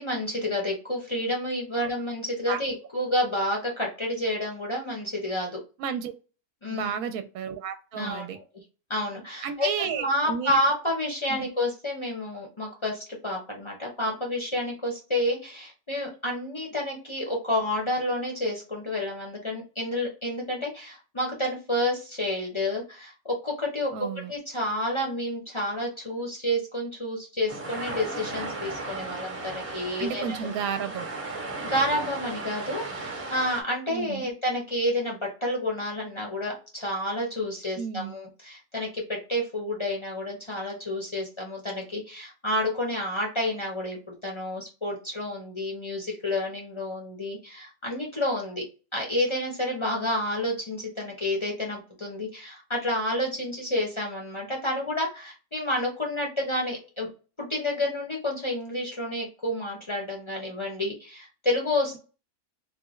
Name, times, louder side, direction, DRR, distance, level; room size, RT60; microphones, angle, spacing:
voice 1, 0.0-5.6 6.6-6.9 7.9-8.4 8.9-23.9 24.3-30.5 31.6-48.6 48.9-57.1 57.4-62.0, left 1 dB, 30° left, -1 dB, 0.6 m, -29 dB
voice 2, 5.8-6.1 6.7-8.4 9.4-10.6 11.3-11.4 23.9-24.3 30.0-31.1 33.9-34.3 37.8-38.1, right 7 dB, 75° right, 9 dB, 1.0 m, -32 dB
sound 1, 27.5-33.6, right 2 dB, 30° right, 0.7 m, -35 dB
3.2 x 2.2 x 3.1 m, 0.34 s
omnidirectional pair, 1.6 m